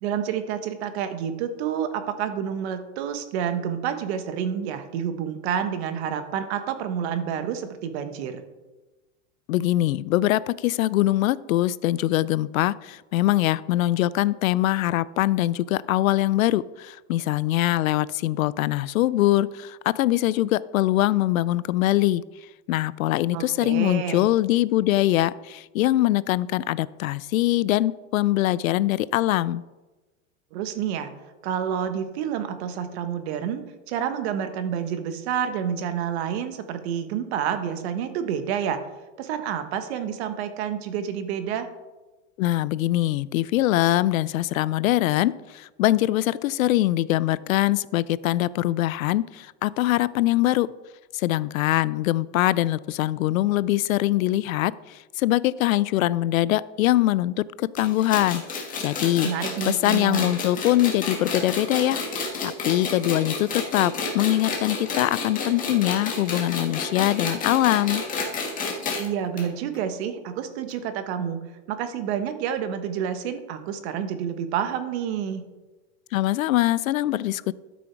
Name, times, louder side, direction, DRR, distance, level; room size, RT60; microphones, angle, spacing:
voice 1, 0.0-8.4 23.3-24.3 30.5-31.1 31.4-38.8 39.2-41.7 59.2-60.3 69.0-71.4 71.7-75.4, right 8 dB, 50° right, 9 dB, 1.2 m, -29 dB
voice 2, 9.5-22.2 22.7-29.6 42.4-50.7 51.1-59.3 59.6-68.0 76.1-77.5, left 15 dB, 85° left, 19 dB, 0.5 m, -23 dB
sound 1, 57.8-69.1 69.4-69.5 69.7-69.8 70.7-70.8, left 4 dB, 20° left, 1.9 m, -30 dB
12.5 x 6.3 x 4.5 m, 1.1 s
supercardioid pair, 150°, 40 cm